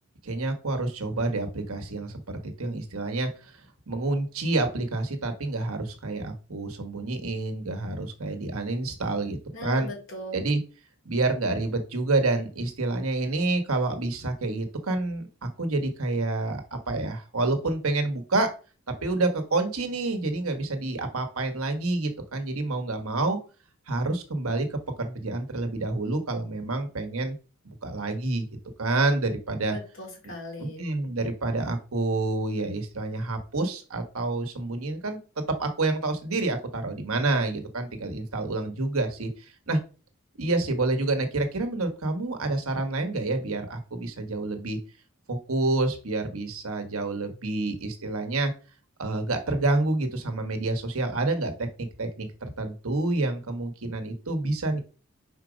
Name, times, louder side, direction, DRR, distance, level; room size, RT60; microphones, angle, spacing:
voice 1, 0.2-3.5 3.9-9.9 10.3-10.6 11.0-15.3 15.6-18.5 19.0-23.4 23.9-27.4 27.6-28.4 28.8-29.8 30.6-35.2 35.5-39.3 39.7-39.8 40.4-44.8 45.3-48.5 49.0-51.7 52.0-52.3 52.6-54.8, right 2 dB, 80° right, 6 dB, 1.2 m, -28 dB
voice 2, 9.5-10.4 29.7-30.9, left 1 dB, 60° left, 1 dB, 2.5 m, -39 dB
5.1 x 4.4 x 4.9 m, 0.36 s
head